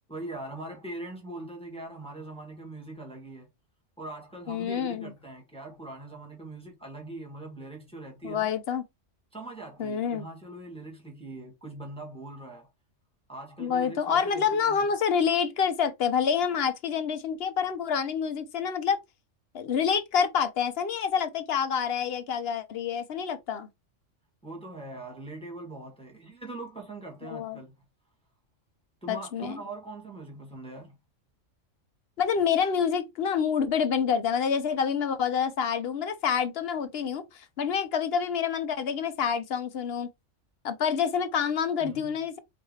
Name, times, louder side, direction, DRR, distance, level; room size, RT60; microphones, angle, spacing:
voice 1, 0.1-3.5 4.0-8.5 9.3-12.7 13.3-14.9 24.4-27.8 29.0-31.0 41.8-42.1, right 2 dB, 5° left, 1.6 m, -41 dB
voice 2, 4.5-5.1 8.2-8.8 9.8-10.2 13.6-19.0 19.5-23.7 27.2-27.6 29.1-29.6 32.2-40.1 40.6-42.4, left 7 dB, 60° left, 0.8 m, -27 dB
4.4 x 3.2 x 3.1 m
omnidirectional pair, 1.3 m